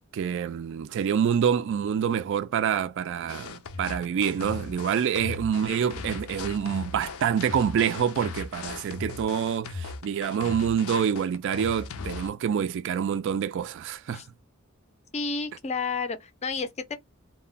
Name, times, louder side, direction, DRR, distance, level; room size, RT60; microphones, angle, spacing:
voice 1, 0.1-14.2, right 8 dB, 60° right, 0.3 m, -27 dB
sound 1, 3.3-12.3, left 4 dB, 85° left, 0.5 m, -38 dB
voice 2, 15.1-17.0, left 4 dB, 30° left, 0.5 m, -31 dB
2.1 x 2.1 x 3.7 m
head